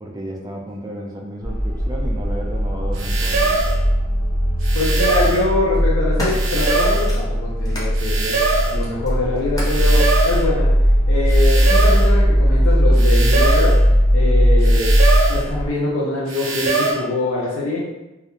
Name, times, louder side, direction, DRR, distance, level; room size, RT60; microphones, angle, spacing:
voice 1, 0.0-3.5, right 1 dB, 20° right, -2 dB, 0.3 m, -32 dB
sound 1, 1.4-15.7, equal, 60° left, 0.9 m, -18 dB
sound 2, 3.0-3.8 4.6-5.4 6.3-7.1 8.0-8.8 9.6-10.4 11.3-12.1 13.0-13.8 14.6-15.4 16.3-16.9, right 3 dB, 80° right, 0.5 m, -22 dB
sound 3, 3.5-3.7 4.7-5.1 5.6-7.9 8.4-9.9 10.8-10.9, equal, 20° left, 0.6 m, -34 dB
voice 2, 4.7-8.4 8.7-10.7 11.1-13.7 14.1-14.9 15.3-17.9, left 2 dB, 75° left, -6 dB, 0.5 m, -23 dB
2.3 x 2.1 x 2.9 m, 1.0 s
head